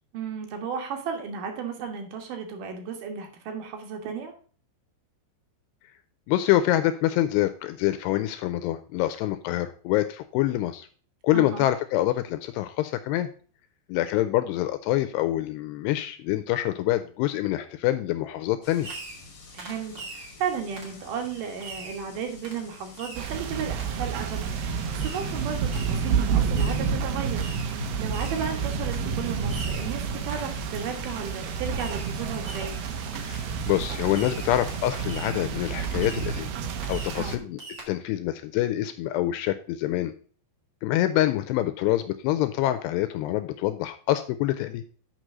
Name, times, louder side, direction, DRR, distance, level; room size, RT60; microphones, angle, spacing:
voice 1, 0.1-4.3 11.3-11.7 19.5-32.8 37.1-37.4, right 6 dB, 60° right, 4 dB, 2.5 m, -34 dB
voice 2, 6.3-10.9 11.2-13.3 13.9-18.9 33.2-36.5 36.9-37.6 37.9-40.1 40.8-44.8, left 14 dB, 85° left, 10 dB, 2.4 m, -26 dB
sound 1, 18.6-35.0, left 2 dB, 65° left, 1.1 m, -43 dB
Fireworks, 18.8-19.3 19.6-20.3 20.8-21.0 21.6-22.0 22.4-22.6 23.0-23.3 23.8-23.9 25.0-25.3 25.7-26.1 26.5-26.9 27.4-27.8 28.1-28.5 28.9-29.1 29.5-29.9 30.3-30.6 31.8-32.2 32.4-32.8 33.3-33.5 34.1-34.5 34.9-35.4 35.8-36.4 36.8-37.3 37.6-37.8, right 2 dB, 30° right, 1.7 m, -42 dB
sound 2, 23.1-37.4, right 6 dB, 80° right, 2.0 m, -30 dB
6.6 x 6.1 x 6.1 m, 0.42 s
omnidirectional pair, 5.2 m